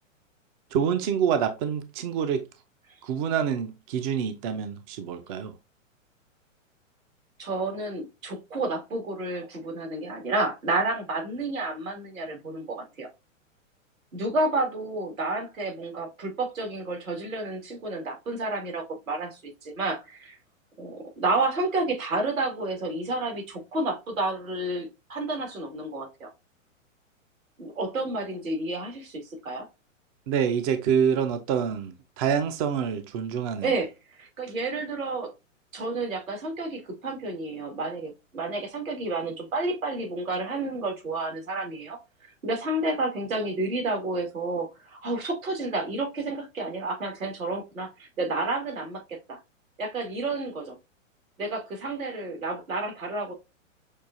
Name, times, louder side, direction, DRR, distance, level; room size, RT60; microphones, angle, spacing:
voice 1, 0.7-2.5 3.0-5.5 30.3-33.7, right 7 dB, 30° right, 0.4 m, -26 dB
voice 2, 7.4-13.1 14.1-20.4 20.8-26.3 27.6-29.7 33.6-33.9 34.2-35.3 35.7-42.0 42.4-49.4 49.8-50.8 51.4-53.3, right 2 dB, 85° right, 2.2 m, -30 dB
6.3 x 2.4 x 2.6 m
hypercardioid pair, 120°, 39 cm